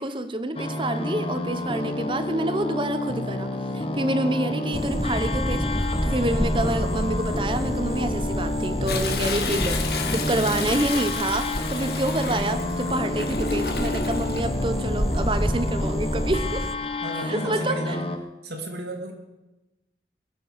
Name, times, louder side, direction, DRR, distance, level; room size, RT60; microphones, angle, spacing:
voice 1, 0.0-3.5 3.7-9.8 10.1-16.7 17.2-18.0, right 1 dB, 30° right, 10 dB, 1.0 m, -27 dB
sound 1, 0.5-18.2, left 2 dB, 30° left, 1.1 m, -30 dB
sound 2, 4.7-16.7, equal, ahead, 0.4 m, -29 dB
Toilet flush, 8.9-14.4 15.9-16.4 16.8-16.9, left 5 dB, 60° left, 1.7 m, -32 dB
voice 2, 17.0-18.0 18.4-19.1, right 1 dB, 70° right, 2 dB, 2.8 m, -34 dB
21.5 x 7.7 x 6.9 m, 1.0 s
head